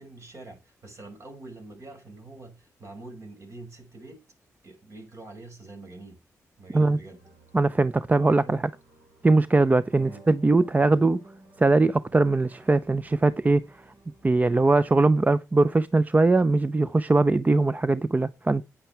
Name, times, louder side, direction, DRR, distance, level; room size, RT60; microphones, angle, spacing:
voice 1, 0.0-4.2 4.6-6.2 6.6-7.2 8.3-8.6 10.0-10.2, right 2 dB, 50° right, 5.7 m, -45 dB
sound 1, 7.1-15.1, right 1 dB, 65° right, 7.7 m, -55 dB
voice 2, 7.5-8.6 9.2-11.2 11.6-13.6 14.2-18.6, right 3 dB, 25° right, 0.6 m, -21 dB
9.4 x 9.0 x 4.5 m
cardioid pair, 60°, 6 cm